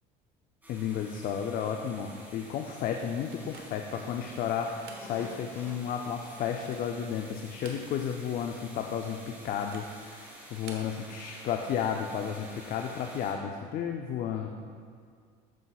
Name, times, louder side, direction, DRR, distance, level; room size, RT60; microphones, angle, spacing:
sound 1, 0.6-13.3, equal, 10° right, 1.9 m, -50 dB
voice 1, 0.7-9.2 9.4-14.5, left 8 dB, 45° left, 4 dB, 0.4 m, -33 dB
sound 2, 2.9-8.0, left 1 dB, 10° left, 1.1 m, -52 dB
sound 3, 3.3-4.0 4.6-5.1 5.5-5.6 6.3-6.9 7.4-8.2 8.5-8.6 9.5-10.0 10.5-10.9, right 5 dB, 60° right, 1.0 m, -50 dB
12.5 x 5.4 x 2.3 m, 2.1 s
cardioid pair, 125°, 19 cm